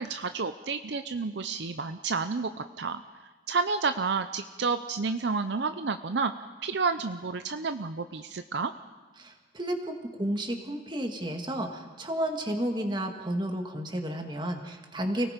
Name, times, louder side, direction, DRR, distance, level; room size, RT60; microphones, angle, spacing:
voice 1, 0.0-3.0 3.5-6.3 6.6-8.7, right 4 dB, 60° right, 9 dB, 0.6 m, -30 dB
voice 2, 9.2-15.3, right 1 dB, 25° right, 4 dB, 2.0 m, -32 dB
29.0 x 18.5 x 5.2 m, 1.4 s
head